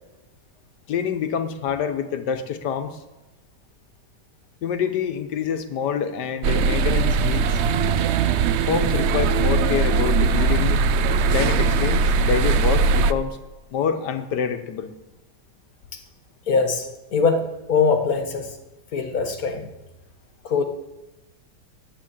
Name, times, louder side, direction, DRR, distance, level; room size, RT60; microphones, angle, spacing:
voice 1, 0.9-3.0 4.6-7.6 8.7-10.8 11.3-13.4 13.7-14.9, left 7 dB, 90° left, 9 dB, 1.6 m, -26 dB
sound 1, 6.4-13.1, right 4 dB, 80° right, 0.6 m, -20 dB
voice 2, 16.5-16.9 17.1-18.6 18.9-19.7 20.4-20.6, left 4 dB, 60° left, 5 dB, 1.8 m, -22 dB
11.0 x 8.1 x 8.9 m, 1.1 s
omnidirectional pair, 1.7 m